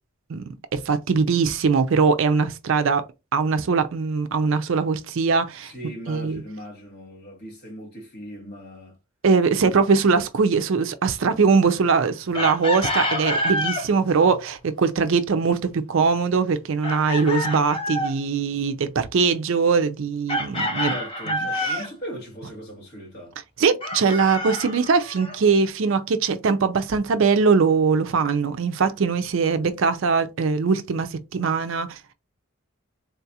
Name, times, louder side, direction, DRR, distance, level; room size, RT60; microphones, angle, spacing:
voice 1, 0.3-3.0 3.3-5.7 6.1-6.4 9.2-20.9 21.3-21.8 23.6-32.1, right 5 dB, 60° right, 0.4 m, -21 dB
voice 2, 5.7-8.9 20.8-23.4, equal, 45° left, 1.5 m, -39 dB
Chicken rooster, 12.3-13.9 16.8-18.2 20.3-21.9 23.8-25.4, left 1 dB, 25° left, 0.6 m, -27 dB
3.8 x 2.4 x 2.8 m
head